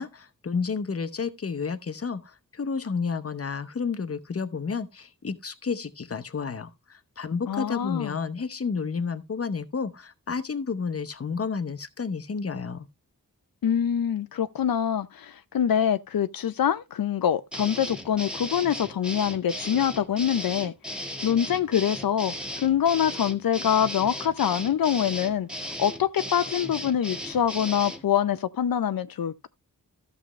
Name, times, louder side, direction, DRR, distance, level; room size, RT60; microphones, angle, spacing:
voice 1, 0.0-12.9, left 5 dB, 45° left, 0.9 m, -31 dB
voice 2, 7.5-8.2 13.6-29.5, left 9 dB, 85° left, 0.6 m, -25 dB
sound 1, 17.5-28.0, equal, 5° right, 1.5 m, -36 dB
13.5 x 6.7 x 3.1 m
wide cardioid pair, 100°, 34 cm